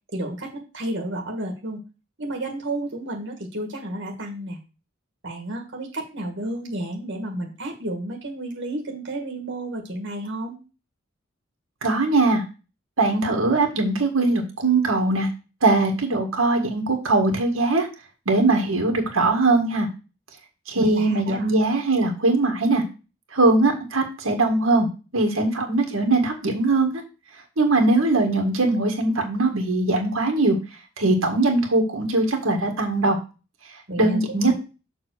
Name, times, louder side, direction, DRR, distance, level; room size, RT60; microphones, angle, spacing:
voice 1, 0.1-1.8 2.2-4.6 5.2-10.6 20.7-21.5 33.9-34.5, right 1 dB, 60° right, 1 dB, 1.7 m, -31 dB
voice 2, 11.8-12.4 13.0-15.3 15.6-17.9 18.3-19.9 20.7-22.8 23.3-24.9 25.1-26.9 27.6-30.6 31.0-33.2 34.0-34.5, right 2 dB, 85° right, 3 dB, 1.8 m, -21 dB
6.9 x 3.8 x 6.3 m, 0.31 s
head